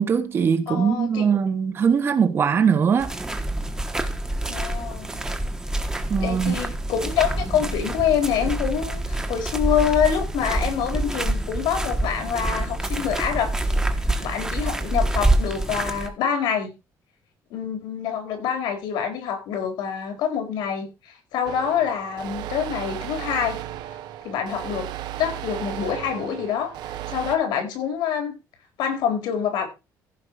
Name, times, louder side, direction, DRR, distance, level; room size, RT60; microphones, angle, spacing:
voice 1, 0.0-3.1 6.1-6.5, right 6 dB, 30° right, 1.3 m, -21 dB
voice 2, 0.7-1.3 4.5-5.2 6.2-13.5 14.2-16.8 17.5-23.6 24.2-24.9 25.2-26.7 27.1-28.4 28.8-29.7, left 8 dB, 90° left, 4.5 m, -26 dB
sound 1, 3.0-16.1, right 1 dB, 10° right, 1.2 m, -26 dB
sound 2, 21.4-27.4, right 12 dB, 75° right, 1.3 m, -35 dB
15.0 x 5.4 x 4.8 m
cardioid pair, 170°, 7 cm